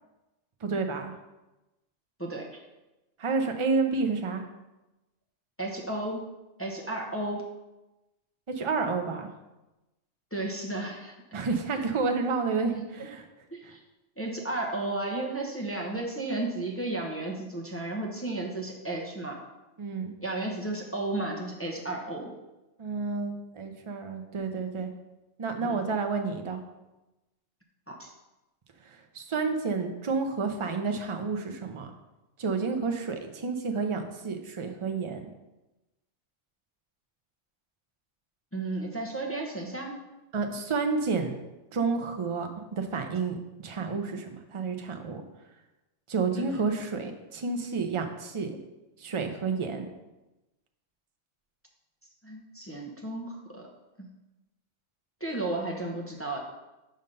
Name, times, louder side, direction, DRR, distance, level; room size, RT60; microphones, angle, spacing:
voice 1, 0.6-1.1 3.2-4.4 8.5-9.3 11.3-13.3 13.6-13.8 19.8-20.1 22.8-24.9 25.4-26.6 28.8-31.9 32.4-35.3 40.3-41.4 41.7-45.2 46.1-48.5 49.0-49.9, right 4 dB, 35° right, 5 dB, 0.5 m, -30 dB
voice 2, 2.2-2.6 5.6-6.2 6.6-7.4 10.3-11.1 11.7-11.8 12.7-13.1 13.5-13.8 14.2-19.4 20.2-22.3 25.6-25.8 27.9-28.1 38.5-39.9 46.3-46.6 52.2-53.7 55.2-56.4, right 2 dB, 15° left, -1 dB, 0.8 m, -33 dB
5.5 x 5.2 x 5.3 m, 1.0 s
omnidirectional pair, 1.3 m